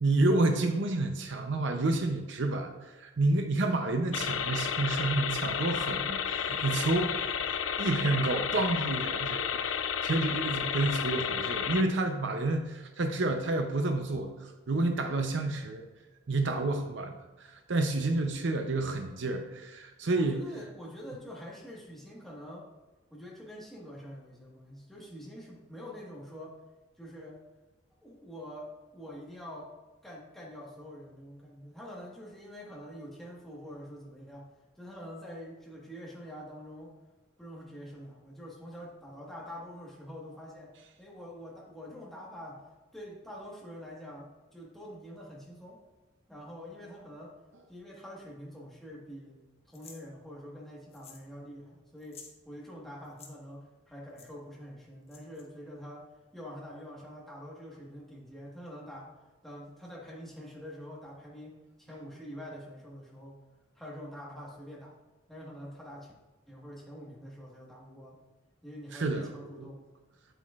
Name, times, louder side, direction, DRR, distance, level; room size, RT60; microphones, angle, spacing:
voice 1, 0.0-7.1 7.8-14.3 14.7-15.9 16.3-20.4 68.9-69.7, right 2 dB, 60° right, 5 dB, 0.6 m, -29 dB
sound 1, 4.1-11.8, left 7 dB, 75° left, 0.5 m, -32 dB
voice 2, 6.5-6.9 10.1-10.3 18.0-18.2 20.1-22.7 23.1-26.6 27.0-27.4 28.0-29.7 30.0-34.5 34.7-36.9 37.4-40.7 41.0-42.6 42.9-45.8 46.3-47.3 47.7-49.4 49.7-56.1 56.3-59.1 59.4-63.4 63.7-65.0 65.3-66.1 66.5-68.2 68.6-69.8, equal, ahead, -4 dB, 1.5 m, -46 dB
coin jangle in hand slow, 49.7-50.0 50.9-51.3 51.5-51.6 52.0-52.3 53.0-53.3 54.2-54.3 55.1-55.4, left 6 dB, 30° left, 0.9 m, -51 dB
8.0 x 7.9 x 2.4 m, 1.2 s
head